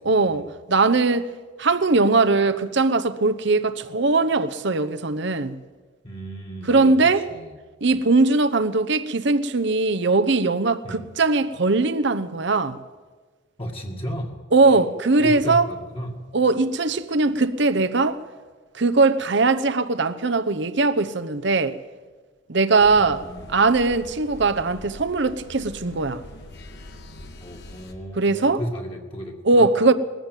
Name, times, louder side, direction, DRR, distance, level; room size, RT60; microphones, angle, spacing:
voice 1, 0.0-1.3 1.6-5.6 6.6-7.3 7.8-12.8 14.5-15.7 16.3-18.2 18.7-21.8 22.5-23.2 23.5-26.3 28.2-28.6 29.4-29.9, right 3 dB, 60° right, 0.9 m, -20 dB
voice 2, 6.0-7.5 10.8-11.1 13.6-14.8 15.2-16.2 23.0-23.4 27.4-29.7, equal, 30° left, 1.9 m, -34 dB
sound 1, 22.8-27.9, left 1 dB, 55° left, 2.1 m, -43 dB
20.5 x 14.5 x 9.2 m
head